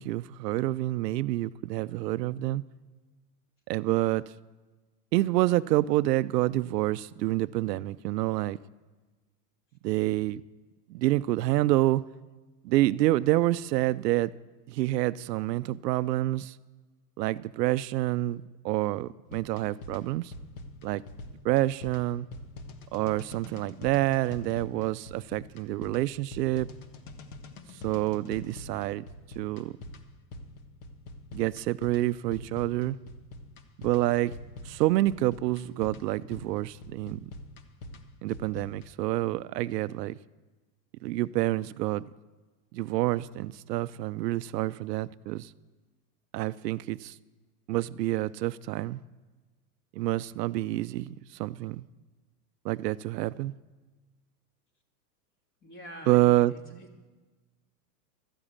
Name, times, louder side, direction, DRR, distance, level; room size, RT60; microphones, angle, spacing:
voice 1, 0.0-2.6 3.7-4.2 5.1-8.6 9.8-10.4 10.9-12.0 12.6-14.3 14.7-16.6 17.2-20.3 20.8-21.0 21.4-22.3 22.9-26.7 27.8-29.0 29.4-29.7 31.3-33.0 33.8-34.3 34.6-37.3 38.2-40.2 41.0-42.0 42.7-45.5 46.3-47.2 47.7-49.0 49.9-51.8 52.6-53.5 56.1-56.8, right 16 dB, 75° right, 0.6 m, -28 dB
sound 1, 19.3-38.9, left 2 dB, 60° left, 1.4 m, -45 dB
voice 2, 55.6-56.9, equal, 25° left, 2.0 m, -46 dB
13.5 x 8.9 x 8.6 m
supercardioid pair, 140°, 50 cm